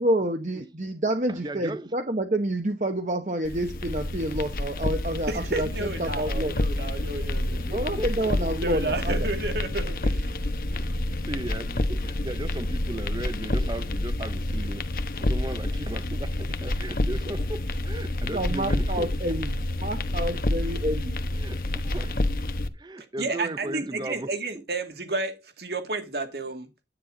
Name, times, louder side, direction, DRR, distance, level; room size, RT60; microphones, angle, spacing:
voice 1, 0.0-6.5 7.7-9.2 18.3-21.2 23.4-23.7, right 1 dB, 45° right, 1.0 m, -28 dB
voice 2, 1.3-2.0 7.5-8.3 10.7-11.0 11.2-14.9 15.2-19.1 21.3-22.3 22.7-24.6, right 1 dB, 25° right, 0.7 m, -36 dB
sound 1, 3.4-22.7, left 1 dB, 55° left, 1.0 m, -28 dB
voice 3, 5.3-7.7 8.6-10.3 23.2-26.7, right 2 dB, 65° right, 2.3 m, -31 dB
10.0 x 9.5 x 3.9 m
head